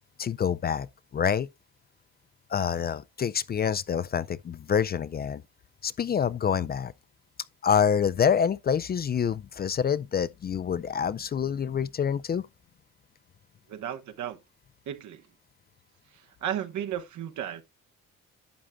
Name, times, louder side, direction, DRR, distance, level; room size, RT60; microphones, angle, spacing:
voice 1, 0.2-0.9 1.1-1.5 2.5-5.4 5.8-6.9 7.6-12.4, left 7 dB, 35° left, 0.4 m, -26 dB
voice 2, 13.7-14.4 14.9-15.3 16.1-17.6, right 10 dB, 70° right, 1.1 m, -34 dB
11.5 x 7.4 x 2.3 m
cardioid pair, 90°, 30 cm